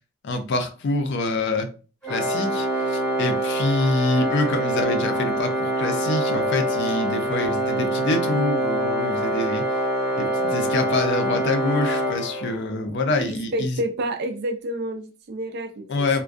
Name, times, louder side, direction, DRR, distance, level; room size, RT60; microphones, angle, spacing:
voice 1, 0.2-1.7 2.1-9.6 10.2-13.8 15.9-16.2, left 2 dB, 55° left, 0.4 m, -26 dB
Organ, 2.0-12.8, right 1 dB, 5° left, 0.9 m, -25 dB
voice 2, 13.5-16.2, right 1 dB, 50° right, 0.4 m, -29 dB
2.3 x 2.1 x 2.4 m
head